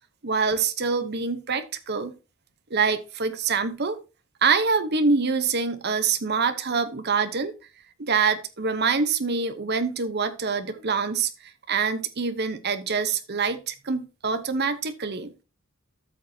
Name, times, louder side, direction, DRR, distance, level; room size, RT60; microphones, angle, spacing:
voice 1, 0.2-2.2 2.7-4.0 4.4-7.5 8.0-11.3 11.7-15.3, right 5 dB, 50° right, 0.9 m, -25 dB
13.0 x 6.3 x 2.8 m
head